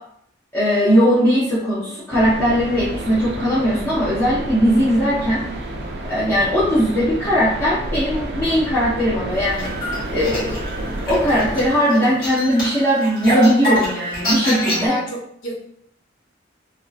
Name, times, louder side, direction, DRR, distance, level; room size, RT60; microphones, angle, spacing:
voice 1, 0.5-5.4 6.1-9.7 10.1-10.6 11.0-14.9, equal, 15° left, -13 dB, 0.7 m, -19 dB
sound 1, 2.1-11.7, right 1 dB, 55° right, 0.3 m, -30 dB
sound 2, 9.4-14.9, equal, 50° left, 1.2 m, -26 dB
voice 2, 14.4-15.6, left 1 dB, 90° left, -2 dB, 0.8 m, -28 dB
2.6 x 2.4 x 2.3 m, 0.71 s
head